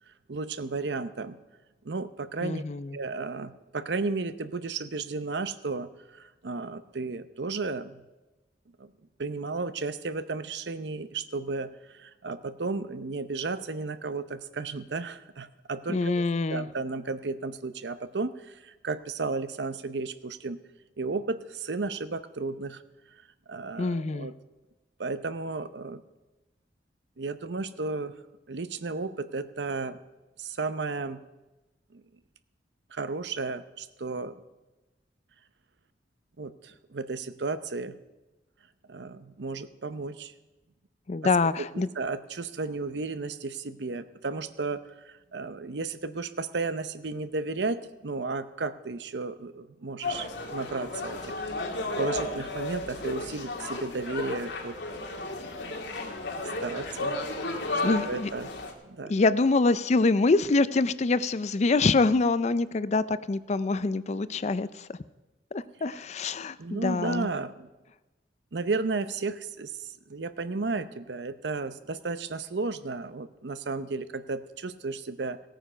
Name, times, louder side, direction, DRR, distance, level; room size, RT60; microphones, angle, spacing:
voice 1, 0.1-1.4 1.8-2.6 2.9-8.0 8.8-8.9 9.2-16.2 16.5-20.6 21.0-22.8 23.1-23.2 23.5-24.3 25.0-26.0 27.2-28.1 28.5-30.0 30.4-31.2 31.9-32.0 32.9-34.4 36.4-38.0 38.9-40.3 42.0-51.4 52.0-54.8 56.6-57.2 57.7-57.8 58.1-58.5 58.8-59.1 66.6-67.7 68.5-75.4, right 3 dB, 75° right, 13 dB, 0.7 m, -33 dB
voice 2, 2.4-3.0 15.9-16.7 23.8-24.3 41.1-41.9 57.8-58.3 59.1-65.0 65.5-67.3, left 3 dB, 40° left, 16 dB, 0.5 m, -25 dB
sound 1, 50.0-58.7, left 2 dB, 85° left, 1.9 m, -33 dB
16.5 x 9.1 x 5.7 m, 1.1 s
head